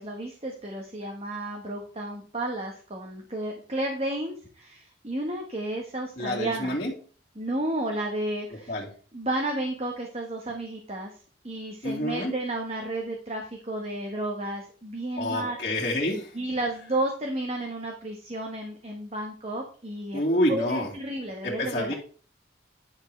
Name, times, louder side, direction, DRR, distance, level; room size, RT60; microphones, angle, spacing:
voice 1, 0.0-6.7 7.3-8.8 9.1-11.1 11.4-15.6 16.3-20.2 20.5-21.9, right 1 dB, 35° right, 1 dB, 1.4 m, -32 dB
voice 2, 6.2-6.9 8.7-8.9 11.8-12.3 15.2-16.3 20.1-20.9 21.4-21.9, left 1 dB, 40° left, -9 dB, 2.3 m, -27 dB
10.5 x 7.2 x 3.3 m, 0.41 s
head